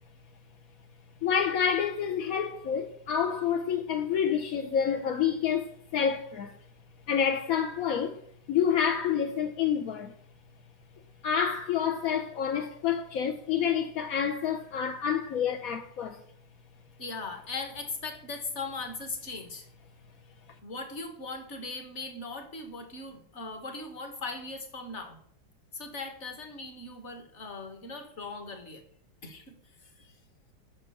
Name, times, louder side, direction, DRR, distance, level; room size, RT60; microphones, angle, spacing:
voice 1, 1.2-6.6 7.1-8.2 8.5-10.1 11.2-16.2, left 8 dB, 60° left, 0.9 m, -28 dB
voice 2, 17.0-19.7 20.6-25.2 25.7-28.8 29.2-29.5 30.0-30.1, left 3 dB, 40° left, 1.5 m, -39 dB
8.8 x 6.2 x 6.9 m
omnidirectional pair, 2.3 m